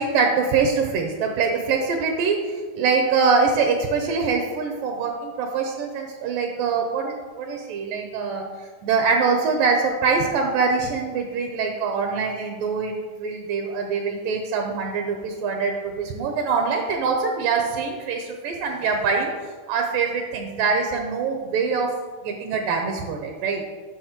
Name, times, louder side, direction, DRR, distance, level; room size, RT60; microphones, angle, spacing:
voice 1, 0.0-2.4 2.8-8.5 8.8-19.3 19.7-22.0 22.2-23.6, right 5 dB, 80° right, 3 dB, 2.1 m, -24 dB
12.0 x 6.1 x 2.9 m, 1.5 s
omnidirectional pair, 4.3 m